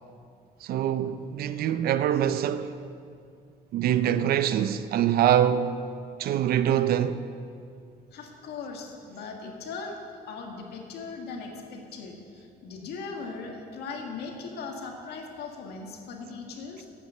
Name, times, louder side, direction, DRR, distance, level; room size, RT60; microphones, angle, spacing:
voice 1, 0.6-2.7 3.7-5.9 6.2-7.2, right 10 dB, 65° right, 0.5 m, -24 dB
voice 2, 8.1-10.0 10.3-16.9, left 4 dB, 75° left, 1.8 m, -39 dB
9.4 x 8.6 x 7.0 m
cardioid pair, 110°, 17 cm